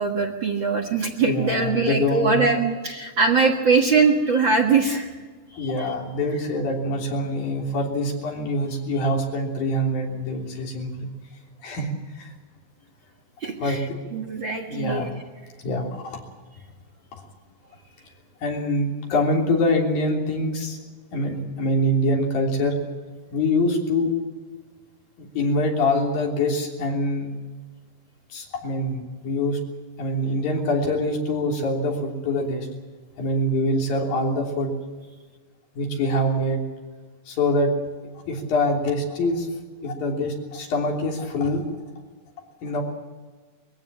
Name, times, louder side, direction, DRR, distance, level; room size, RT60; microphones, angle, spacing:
voice 1, 0.0-5.1 5.5-5.9 13.4-15.1, right 4 dB, 45° right, 2 dB, 1.7 m, -22 dB
voice 2, 1.2-2.4 5.6-11.1 11.6-12.3 13.6-13.8 14.7-15.1 15.6-16.2 17.1-17.2 18.4-20.8 21.1-22.8 23.3-24.1 25.2-27.3 28.3-29.6 30.0-32.7 33.2-34.7 35.7-36.6 37.3-37.7 38.3-39.5 39.8-41.7 42.6-42.8, left 1 dB, 80° left, 0 dB, 5.0 m, -24 dB
22.5 x 15.5 x 8.6 m, 1.4 s
omnidirectional pair, 4.0 m